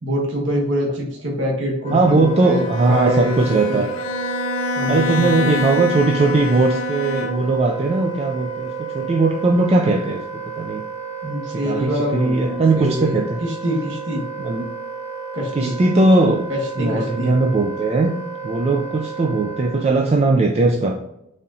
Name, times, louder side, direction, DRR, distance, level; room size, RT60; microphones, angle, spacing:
voice 1, 0.0-3.8 4.8-5.8 11.2-14.2 15.3-15.8 16.5-17.3, equal, 65° right, -1 dB, 1.1 m, -25 dB
Wind instrument woodwind instrument, 1.8-20.0, right 5 dB, 35° left, 0.9 m, -32 dB
voice 2, 1.9-3.9 4.9-10.8 11.6-13.4 14.4-14.7 15.6-16.4 16.8-18.1 18.4-20.9, right 2 dB, 30° right, 2 dB, 0.3 m, -19 dB
Bowed string instrument, 2.4-7.7, left 3 dB, 80° left, 0.5 m, -27 dB
4.2 x 3.6 x 2.7 m, 0.80 s
head